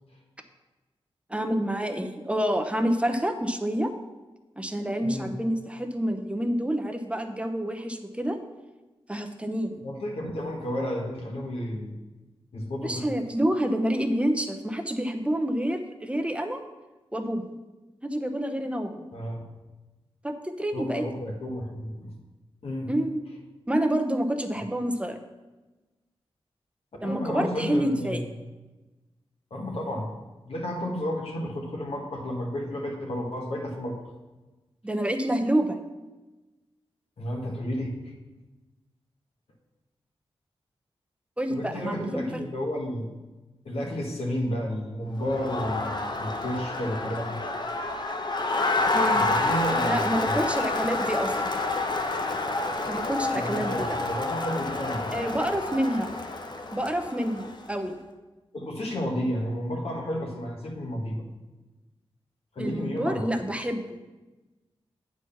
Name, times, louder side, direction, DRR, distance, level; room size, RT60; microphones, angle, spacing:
voice 1, 1.3-3.9 4.6-8.4 9.1-9.8 12.8-16.6 17.1-17.5 18.0-19.1 20.2-21.1 22.9-23.2 23.7-25.2 27.0-28.2 34.8-35.8 41.4-42.4 48.9-49.2 49.8-51.6 52.9-54.0 55.1-56.1 56.7-58.0 62.6-64.1, equal, 10° right, 6 dB, 0.8 m, -28 dB
voice 2, 9.8-12.0 12.5-13.1 19.1-19.5 20.7-22.1 22.6-22.9 27.0-28.3 29.5-30.1 30.4-34.0 37.2-38.0 41.5-43.1 43.6-47.4 49.1-50.4 53.3-55.1 58.5-61.2 62.5-63.2, equal, 70° left, -1 dB, 1.7 m, -32 dB
Crowd, 45.2-57.7, left 2 dB, 45° left, 0.9 m, -28 dB
8.6 x 4.7 x 5.8 m, 1.2 s
cardioid pair, 60°, 10 cm